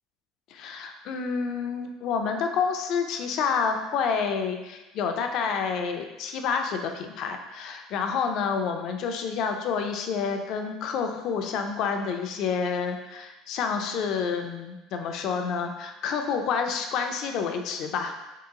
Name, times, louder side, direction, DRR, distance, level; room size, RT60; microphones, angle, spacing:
voice 1, 0.5-18.1, left 6 dB, 55° left, 5 dB, 0.4 m, -29 dB
2.9 x 2.8 x 3.6 m, 1.1 s
cardioid pair, 125°, 0 cm